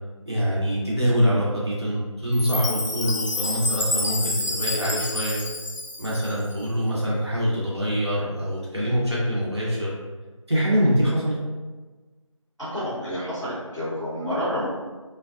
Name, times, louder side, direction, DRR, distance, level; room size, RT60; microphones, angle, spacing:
voice 1, 0.3-5.4 6.0-9.9 10.5-11.4, equal, 50° right, -7 dB, 0.6 m, -24 dB
Chime, 2.3-6.5, left 2 dB, 65° left, 0.4 m, -29 dB
voice 2, 12.6-14.7, equal, ahead, -33 dB, 0.9 m, -29 dB
2.4 x 2.2 x 2.3 m, 1.3 s
figure-of-eight pair, 175°, 17 cm